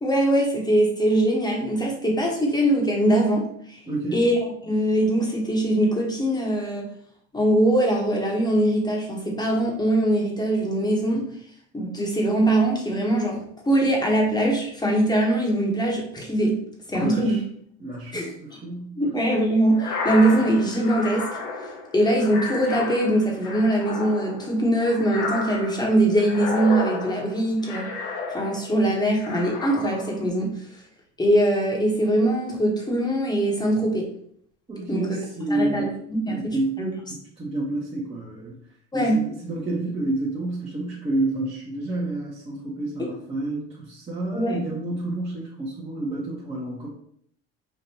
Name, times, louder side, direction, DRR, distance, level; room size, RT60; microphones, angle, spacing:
voice 1, 0.0-3.8 4.1-6.9 7.3-11.2 11.7-16.6 16.9-17.4 18.1-18.3 19.0-21.3 21.9-27.9 28.3-30.5 31.2-34.0 34.9-35.1 35.5-36.9 38.9-39.2 43.0-43.1 44.3-44.6, right 1 dB, 15° left, 0 dB, 1.2 m, -22 dB
voice 2, 3.8-4.3 16.9-17.4 17.8-18.9 34.7-35.9 36.3-36.8 37.1-38.6 38.9-46.9, right 2 dB, 20° right, -7 dB, 1.1 m, -29 dB
sound 1, 19.7-28.8 29.2-30.2, left 3 dB, 75° left, 1.1 m, -32 dB
5.4 x 2.5 x 2.9 m, 0.66 s
supercardioid pair, 95°, 31 cm